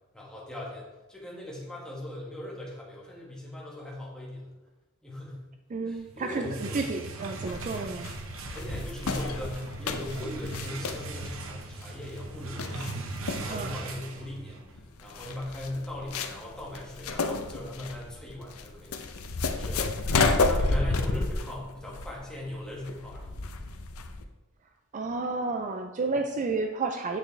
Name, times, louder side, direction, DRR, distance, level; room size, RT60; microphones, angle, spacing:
voice 1, 0.1-4.5 5.0-5.5 5.8-6.8 8.5-19.0 19.5-19.8 20.4-23.4, left 1 dB, 5° left, -4 dB, 1.8 m, -39 dB
voice 2, 5.7-8.1 13.5-13.8 24.9-27.2, right 3 dB, 35° right, 5 dB, 0.4 m, -31 dB
sound 1, 6.1-14.7, right 3 dB, 65° right, 0.8 m, -39 dB
sound 2, 7.5-24.2, left 3 dB, 85° left, 0.7 m, -31 dB
8.2 x 6.4 x 3.3 m, 1.1 s
head